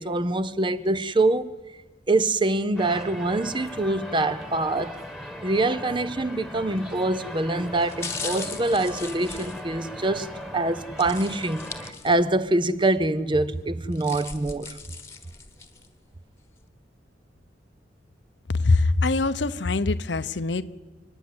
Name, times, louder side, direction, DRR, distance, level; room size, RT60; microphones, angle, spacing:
voice 1, 0.0-1.5 2.1-5.0 5.4-11.6 12.0-14.8, right 2 dB, 25° right, 0.8 m, -24 dB
sound 1, 2.8-11.9, left 1 dB, ahead, 1.7 m, -39 dB
sound 2, 6.8-7.1 7.7-10.3 11.0-12.4 12.8-12.9 13.7-15.9 16.4-16.5, left 4 dB, 15° left, 1.3 m, -39 dB
voice 2, 18.5-20.6, left 3 dB, 80° left, 0.9 m, -23 dB
29.5 x 10.0 x 9.6 m
head